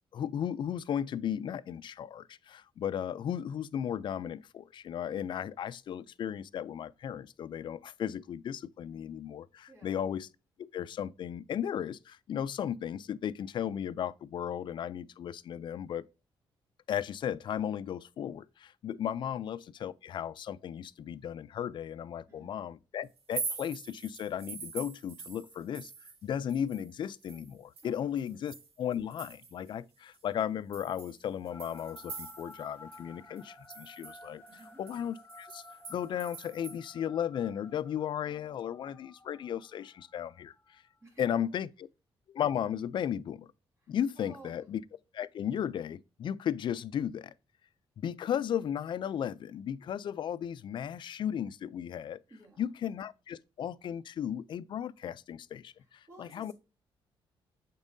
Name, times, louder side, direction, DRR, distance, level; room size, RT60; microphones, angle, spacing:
voice 1, 0.1-10.3 10.6-16.0 16.9-34.4 34.8-35.6 35.9-40.8 41.2-41.7 42.3-43.5 43.9-44.8 45.1-47.3 48.0-52.2 52.6-56.5, left 9 dB, 55° left, 0.4 m, -35 dB
voice 2, 9.7-10.1 19.2-19.4 22.3-22.6 27.8-28.4 34.5-34.8 41.0-41.4 43.8-44.6 52.3-52.7 55.8-56.5, right 2 dB, 25° right, 2.8 m, -55 dB
sound 1, 23.2-26.2 26.5-29.7 30.1-30.2 30.7-32.7 32.9-33.0 33.4-36.8, right 5 dB, 80° right, 1.4 m, -44 dB
sound 2, 31.5-41.0, left 2 dB, 15° left, 1.4 m, -54 dB
7.1 x 5.4 x 2.6 m
cardioid pair, 135°, 10 cm